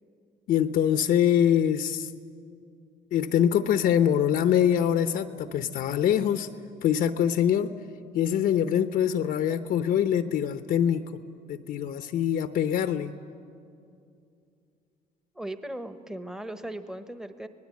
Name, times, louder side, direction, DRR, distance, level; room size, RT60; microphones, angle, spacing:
voice 1, 0.5-2.1 3.1-6.5 6.8-7.7 8.1-11.0 11.5-13.1, left 9 dB, 60° left, 9 dB, 0.8 m, -24 dB
voice 2, 15.3-17.5, right 1 dB, 5° right, 9 dB, 1.0 m, -37 dB
25.0 x 19.5 x 8.4 m, 2.5 s
cardioid pair, 110°, 17 cm